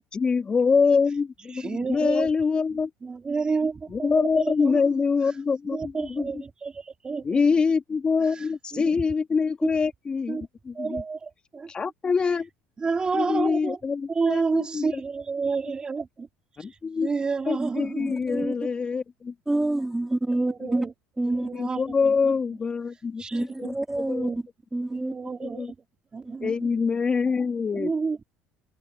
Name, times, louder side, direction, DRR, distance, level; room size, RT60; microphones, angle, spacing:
voice 1, 0.1-2.9 3.9-6.3 7.2-11.0 11.7-12.5 13.1-15.0 16.6-17.1 17.5-19.3 20.6-20.7 21.5-23.7 24.1-24.3 25.4-25.7 26.4-27.9, left 5 dB, 30° left, 2.8 m, -25 dB
voice 2, 1.5-2.3 3.0-4.9 5.7-7.4 8.7-9.0 9.6-9.7 10.3-10.5 10.7-11.7 12.8-13.8 14.1-16.3 17.0-18.4 20.3-20.9 21.2-22.3 23.2-23.8 24.2-24.4 24.9-25.7 26.1-26.6 27.7-28.2, right 4 dB, 25° right, 2.7 m, -30 dB
voice 3, 18.1-18.5 19.5-20.8 21.2-21.5 23.3-24.3 24.7-25.1 26.2-26.4, right 2 dB, 10° right, 2.1 m, -27 dB
supercardioid pair, 95°, 4 cm